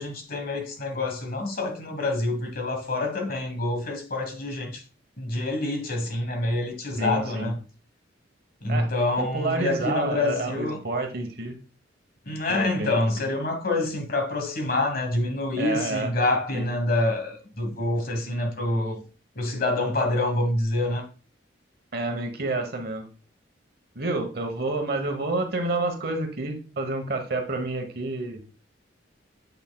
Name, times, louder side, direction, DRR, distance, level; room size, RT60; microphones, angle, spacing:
voice 1, 0.0-4.8 5.2-7.6 8.6-10.8 12.3-19.0 19.3-21.0, left 2 dB, 50° left, 1.4 m, -27 dB
voice 2, 7.0-7.5 8.7-8.9 9.2-11.5 12.5-12.9 15.6-16.1 16.5-16.7 21.9-23.1 23.9-28.4, right 2 dB, 50° right, 1.1 m, -29 dB
8.0 x 5.9 x 2.3 m
head